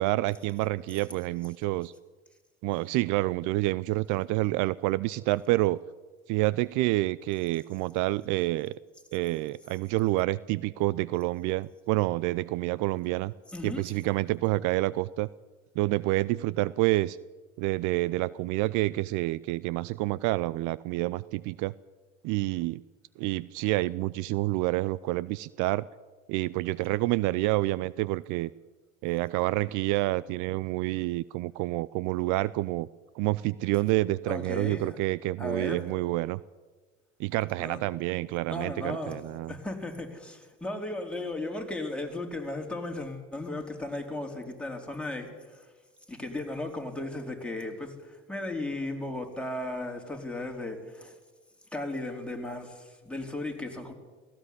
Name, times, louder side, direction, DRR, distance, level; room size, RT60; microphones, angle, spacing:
voice 1, 0.0-1.9 2.6-5.8 6.3-8.7 9.1-13.3 13.6-15.3 15.8-17.2 17.6-21.7 22.2-22.8 23.2-25.9 26.3-28.5 29.0-32.9 33.1-36.4 37.2-39.5, right 19 dB, 60° right, 0.6 m, -28 dB
voice 2, 13.5-13.8 34.3-35.0 35.4-35.9 37.6-37.8 38.5-39.2 39.5-45.6 46.1-51.1 51.7-53.9, left 2 dB, 5° left, 4.4 m, -36 dB
18.0 x 17.0 x 9.9 m
hypercardioid pair, 70°, 35 cm